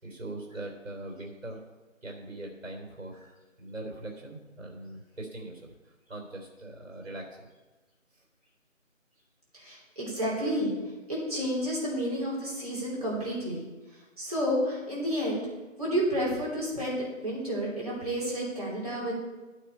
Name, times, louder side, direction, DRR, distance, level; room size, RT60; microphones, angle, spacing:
voice 1, 0.0-1.6 2.0-3.2 3.6-7.5, right 2 dB, 70° right, 1 dB, 3.4 m, -41 dB
voice 2, 9.5-10.7 11.1-13.6 14.2-15.5 15.8-19.2, equal, 30° right, -6 dB, 3.4 m, -30 dB
11.0 x 9.1 x 4.4 m, 1.2 s
figure-of-eight pair, 175°, 39 cm